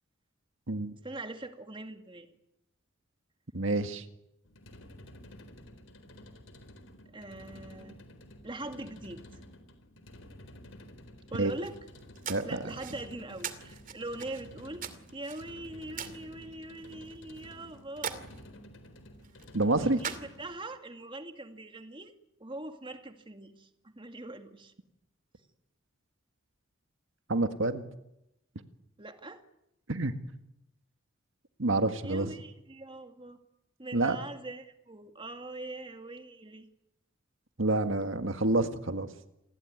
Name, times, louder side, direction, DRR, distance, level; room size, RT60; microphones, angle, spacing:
voice 1, 1.0-2.3 7.1-8.0 8.4-9.2 11.3-11.8 12.4-14.9 15.1-18.3 19.8-22.1 22.4-24.7 29.0-29.4 32.0-33.4 33.8-36.7, right 2 dB, 25° right, 6 dB, 2.2 m, -42 dB
voice 2, 3.5-4.0 11.4-11.5 12.3-12.6 19.5-20.0 27.3-27.8 29.9-30.1 31.6-32.3 33.9-34.2 37.6-39.1, right 2 dB, 75° right, 8 dB, 1.9 m, -28 dB
sound 1, 4.4-20.6, left 1 dB, 80° left, 4.0 m, -51 dB
sound 2, 11.5-20.8, right 7 dB, 40° right, 2.5 m, -44 dB
29.0 x 21.0 x 9.6 m, 0.86 s
head